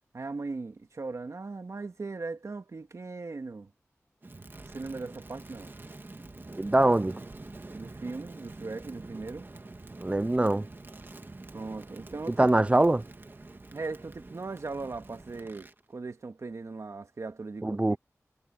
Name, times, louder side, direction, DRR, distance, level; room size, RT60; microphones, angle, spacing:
voice 1, 0.1-3.7 4.7-5.7 7.7-9.5 11.5-12.5 13.7-18.0, right 3 dB, 65° right, 1.8 m, -38 dB
Crackle, 4.2-15.8, right 2 dB, 40° right, 2.1 m, -46 dB
voice 2, 6.6-7.2 10.0-10.7 12.4-13.0 17.6-18.0, right 2 dB, 25° right, 0.4 m, -23 dB
wide cardioid pair, 75°, 6 cm